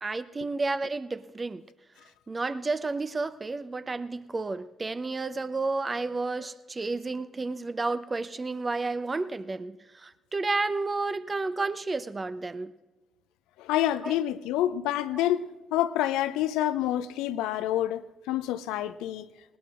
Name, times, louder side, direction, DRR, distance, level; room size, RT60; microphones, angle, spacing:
voice 1, 0.0-1.6 2.3-12.7 14.0-14.1 15.1-15.2, right 3 dB, 30° right, 0.7 m, -31 dB
voice 2, 13.6-15.4 15.7-18.0 18.3-19.3, left 13 dB, 70° left, 0.5 m, -27 dB
19.0 x 19.0 x 2.5 m
figure-of-eight pair, 40°, 0 cm